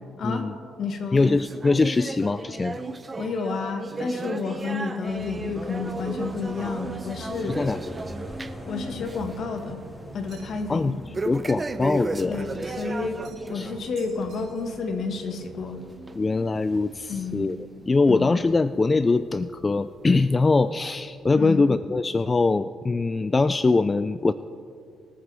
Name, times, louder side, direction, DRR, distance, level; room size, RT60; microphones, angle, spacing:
voice 1, 0.2-0.6 1.1-2.8 7.5-7.8 10.7-11.0 11.3-12.4 13.5-13.7 16.2-17.6 17.9-24.3, left 3 dB, 25° left, 13 dB, 0.3 m, -22 dB
voice 2, 0.8-1.2 3.2-7.6 8.7-9.8 10.1-10.9 12.2-15.8 17.1-17.4 18.1-18.3 21.4-21.6, left 4 dB, 60° left, 6 dB, 1.5 m, -30 dB
sound 1, 1.2-8.7 9.0-9.4 9.7-9.8 11.1-13.8 14.2-14.4 15.1-15.2 16.1-16.2 17.0-17.1, right 3 dB, 25° right, 0.6 m, -34 dB
sound 2, 5.1-20.1 20.5-20.6 20.8-21.4, equal, ahead, 2.3 m, -43 dB
sound 3, 10.3-10.8 13.2-13.6 14.0-14.9, right 6 dB, 75° right, 3.2 m, -53 dB
25.0 x 9.1 x 3.4 m, 2.5 s
cardioid pair, 90°, 0 cm